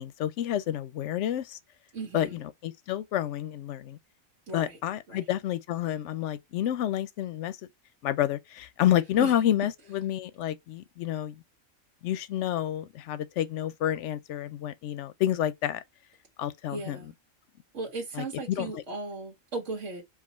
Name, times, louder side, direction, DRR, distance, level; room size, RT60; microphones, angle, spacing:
voice 1, 0.0-1.6 2.1-4.0 4.5-7.6 8.0-11.4 12.0-15.8 16.4-17.0 18.1-18.7, left 11 dB, 70° left, 0.8 m, -29 dB
voice 2, 1.9-2.4 4.5-4.8 5.1-5.2 9.2-9.3 16.7-17.1 17.7-20.0, right 3 dB, 60° right, 1.6 m, -36 dB
4.8 x 2.4 x 4.0 m
omnidirectional pair, 1.4 m